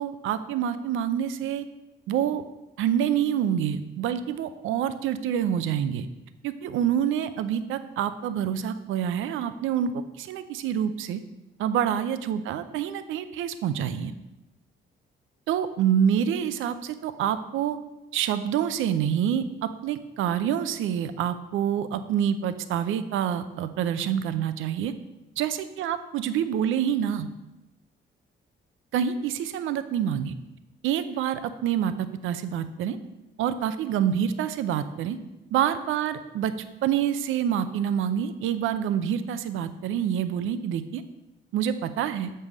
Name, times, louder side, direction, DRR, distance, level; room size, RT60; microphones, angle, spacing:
voice 1, 0.0-1.6 2.1-2.4 2.8-6.1 6.4-11.2 11.6-14.1 15.5-17.8 18.1-24.9 25.4-27.3 28.9-30.3 30.8-33.0 33.4-35.2 35.5-36.5 36.8-41.0 41.5-42.3, right 9 dB, 85° right, 11 dB, 0.6 m, -27 dB
6.5 x 5.5 x 7.2 m, 0.98 s
cardioid pair, 90°, 20 cm